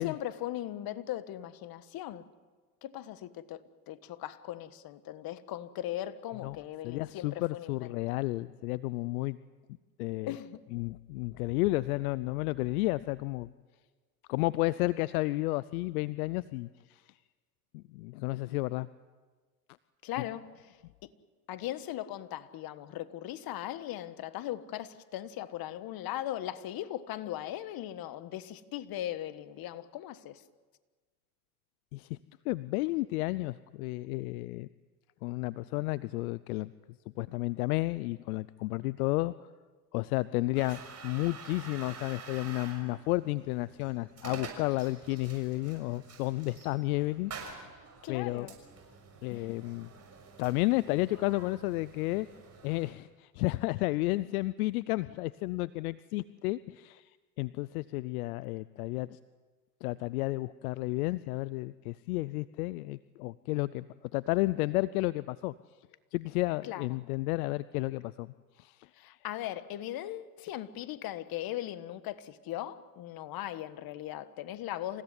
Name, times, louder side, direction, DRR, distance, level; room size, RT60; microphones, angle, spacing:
voice 1, 0.0-2.3 2.8-7.7 10.3-10.6 20.0-20.8 21.5-30.4 48.0-48.6 49.3-49.5 66.7-66.9 69.0-75.0, left 13 dB, 55° left, 1.5 m, -39 dB
voice 2, 6.8-9.4 10.0-10.4 10.7-13.5 14.3-17.0 17.7-18.9 31.9-32.2 32.4-34.7 35.2-36.7 37.2-39.3 39.9-47.7 48.1-48.5 49.2-49.9 50.4-52.3 52.6-57.1 57.4-59.2 59.8-63.8 64.1-65.5 66.1-69.1, left 20 dB, 75° left, 0.7 m, -32 dB
sound 1, 40.5-52.9, right 5 dB, 35° right, 6.3 m, -48 dB
27.5 x 16.5 x 9.7 m
hypercardioid pair, 85°, 44 cm